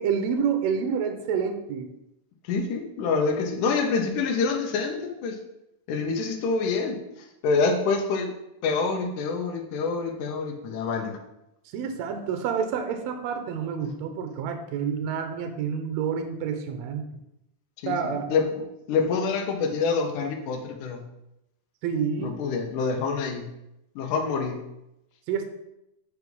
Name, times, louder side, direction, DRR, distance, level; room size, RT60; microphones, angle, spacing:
voice 1, 0.0-1.9 11.7-17.0 17.9-18.3 21.8-22.3 25.3-25.5, right 7 dB, 85° right, 6 dB, 1.6 m, -28 dB
voice 2, 2.5-5.4 5.9-7.0 7.4-8.3 8.6-11.2 17.8-18.6 18.9-21.0 22.2-23.5 24.0-24.6, left 4 dB, 70° left, 2 dB, 2.2 m, -26 dB
9.5 x 3.3 x 5.4 m, 0.86 s
omnidirectional pair, 4.1 m